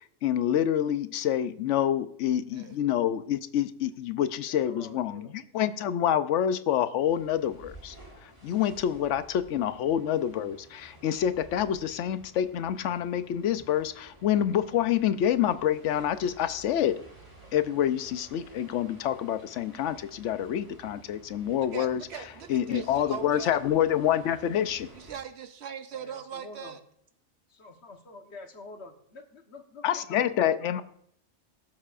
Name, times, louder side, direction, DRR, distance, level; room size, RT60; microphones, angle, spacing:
voice 1, 0.2-8.0 8.2-17.0 17.5-22.0 22.5-24.9 29.8-30.8, left 10 dB, 85° left, 12 dB, 1.0 m, -27 dB
voice 2, 4.5-5.3 26.0-26.8 27.5-30.7, left 2 dB, 65° left, 4 dB, 1.4 m, -47 dB
sound 1, 7.0-25.2, right 1 dB, 15° right, 5.4 m, -53 dB
voice 3, 21.7-23.6 24.9-26.8, right 8 dB, 70° right, 10 dB, 0.8 m, -40 dB
22.0 x 7.5 x 2.5 m, 0.69 s
omnidirectional pair, 1.2 m